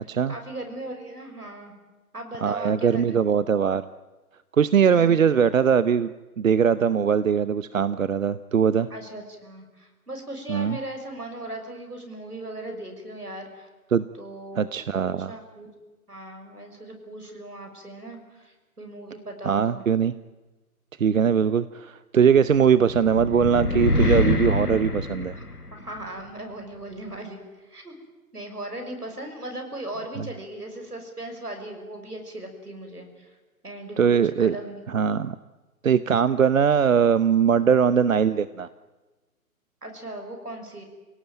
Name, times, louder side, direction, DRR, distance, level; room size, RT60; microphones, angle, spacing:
voice 1, 0.3-1.7 2.1-3.2 4.9-5.3 8.9-13.7 14.2-14.7 15.0-15.7 16.1-19.9 25.7-28.0 28.3-33.3 33.6-34.1 34.4-34.8 37.5-37.7 39.8-40.8, right 1 dB, 85° right, 4 dB, 6.1 m, -38 dB
voice 2, 2.4-3.8 4.6-6.1 6.4-8.9 10.5-10.8 13.9-14.0 14.5-15.3 19.4-20.1 21.0-25.3 30.2-30.3 34.0-34.6 34.9-35.4 35.8-38.7, right 7 dB, 60° right, 15 dB, 0.9 m, -21 dB
sound 1, 22.6-26.0, left 2 dB, 85° left, 2.2 m, -25 dB
27.5 x 17.5 x 9.1 m, 1.2 s
figure-of-eight pair, 130°, 45 cm